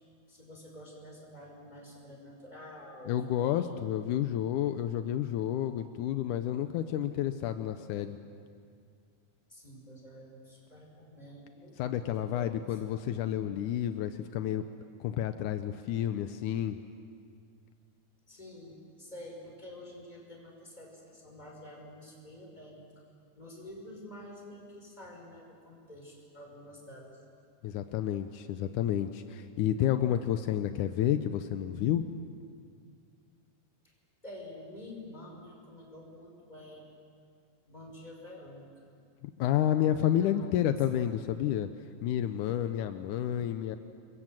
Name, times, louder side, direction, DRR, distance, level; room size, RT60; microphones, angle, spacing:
voice 1, 0.3-3.1 3.4-3.9 9.5-13.1 18.3-22.8 23.3-27.2 33.8-33.9 34.2-36.8 37.7-38.9 40.0-41.1, left 1 dB, 10° left, -1 dB, 5.6 m, -48 dB
voice 2, 3.1-8.2 11.8-14.6 15.0-16.8 27.6-32.2 39.2-41.7 42.0-43.8, left 11 dB, 80° left, 9 dB, 2.3 m, -30 dB
28.0 x 22.5 x 7.7 m, 2.2 s
omnidirectional pair, 3.6 m